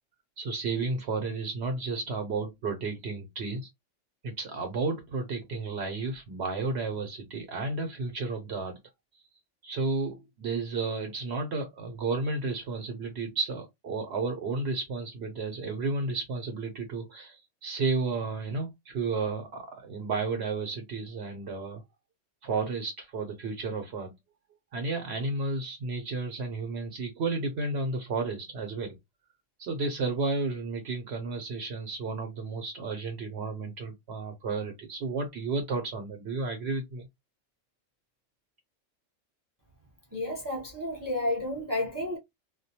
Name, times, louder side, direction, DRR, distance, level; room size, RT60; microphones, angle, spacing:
voice 1, 0.4-3.7 4.2-8.8 9.6-21.8 22.4-24.2 24.7-29.0 29.6-37.1, right 3 dB, 65° right, 0.8 m, -32 dB
voice 2, 40.1-42.2, left 1 dB, 35° right, 0.3 m, -31 dB
2.2 x 2.1 x 2.7 m
omnidirectional pair, 1.3 m